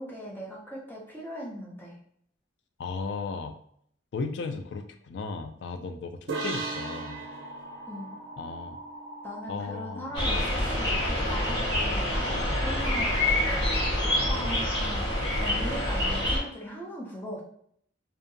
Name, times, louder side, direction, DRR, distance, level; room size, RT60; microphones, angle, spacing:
voice 1, 0.0-2.0 7.9-8.2 9.2-12.3 12.6-15.1 15.4-17.4, equal, 10° left, -3 dB, 0.6 m, -39 dB
voice 2, 2.8-3.6 4.1-7.2 8.4-8.8 9.5-10.1 12.3-12.6, left 4 dB, 65° left, 7 dB, 0.3 m, -35 dB
sound 1, 6.3-9.8, right 3 dB, 85° right, 0.5 m, -38 dB
sound 2, 6.5-14.6, equal, 30° right, 0.6 m, -44 dB
sound 3, 10.1-16.4, left 1 dB, 25° left, 0.9 m, -26 dB
2.7 x 2.1 x 2.5 m, 0.66 s
head